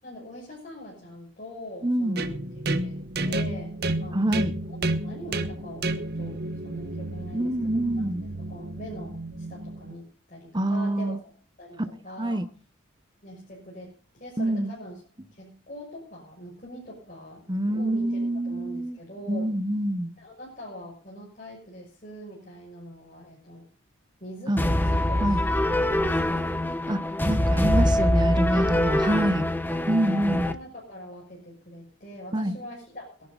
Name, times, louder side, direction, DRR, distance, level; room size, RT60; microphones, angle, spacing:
voice 1, 0.0-2.4 2.7-3.7 4.0-4.2 4.6-11.3 11.6-12.4 13.2-15.0 15.3-19.5 20.2-23.7 24.2-25.6 26.0-26.5 28.5-28.9 29.7-29.9 30.4-33.3, equal, 40° left, 6.2 m, -43 dB
voice 2, 1.8-2.2 4.1-4.5 7.3-8.3 10.5-11.2 12.2-12.4 14.4-14.7 17.5-19.0 19.3-20.1 24.5-24.6 25.2-25.4 26.9-29.5 29.9-30.5 32.3-32.6, right 1 dB, 20° right, 0.9 m, -26 dB
sound 1, 2.2-9.9, right 2 dB, 50° right, 1.3 m, -31 dB
sound 2, 24.6-30.5, left 1 dB, 10° left, 1.0 m, -24 dB
22.5 x 11.0 x 4.0 m
head